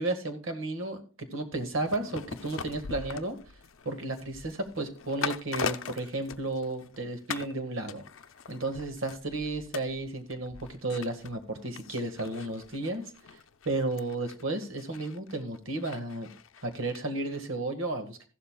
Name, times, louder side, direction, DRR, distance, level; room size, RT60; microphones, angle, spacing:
voice 1, 0.0-3.4 3.8-8.0 8.5-13.4 13.6-16.3 16.6-18.2, right 2 dB, 80° right, 6 dB, 1.6 m, -33 dB
sound 1, 1.8-7.0 7.3-7.6 7.9-17.0 17.3-17.4, left 6 dB, 80° left, 0.6 m, -41 dB
15.0 x 12.0 x 2.3 m, 0.39 s
head